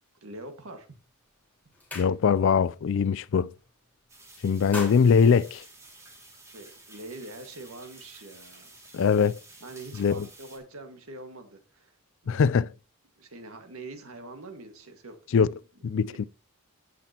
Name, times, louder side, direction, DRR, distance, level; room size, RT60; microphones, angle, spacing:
voice 1, 0.2-0.9 6.5-8.8 9.6-11.9 12.2-12.7 13.2-15.5 15.8-16.2, right 2 dB, 70° right, 1.8 m, -44 dB
sound 1, 0.9-1.1 1.5-2.6 3.0-3.2 3.5-4.1 4.4-6.3, left 2 dB, 10° left, 4.2 m, -41 dB
voice 2, 1.9-3.5 4.4-5.6 8.9-9.4 10.0-10.3 12.3-12.7 15.3-15.5 15.8-16.2, left 6 dB, 60° left, 0.3 m, -22 dB
sound 2, 4.1-10.6, right 2 dB, 15° right, 2.3 m, -51 dB
16.0 x 5.9 x 2.9 m
head